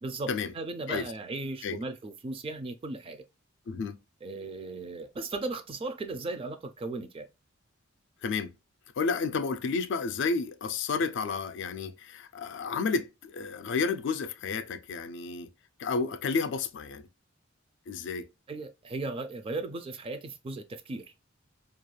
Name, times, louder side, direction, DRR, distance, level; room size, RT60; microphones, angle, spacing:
voice 1, 0.0-3.2 4.2-7.3 18.5-21.0, right 2 dB, 25° right, 0.3 m, -36 dB
voice 2, 3.7-4.0 8.2-8.5 9.0-15.5 15.8-17.0 17.9-18.3, left 4 dB, 65° left, 0.3 m, -31 dB
2.4 x 2.2 x 3.0 m
head